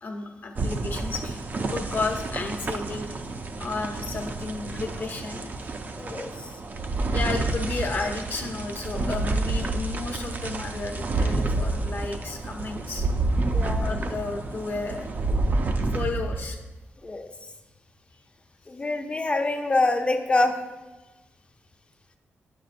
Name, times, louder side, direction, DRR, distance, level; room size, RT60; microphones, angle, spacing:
voice 1, 0.0-3.1 3.6-5.5 7.1-13.1 13.8-15.1 15.9-16.6, left 3 dB, 50° left, 2 dB, 0.9 m, -32 dB
sound 1, 0.6-16.5, right 2 dB, 45° right, 0.5 m, -29 dB
voice 2, 6.0-6.5 13.5-13.9 17.0-17.3 18.7-20.5, left 2 dB, 25° left, 5 dB, 0.6 m, -25 dB
7.8 x 7.3 x 2.6 m, 1.2 s
cardioid pair, 100°, 4 cm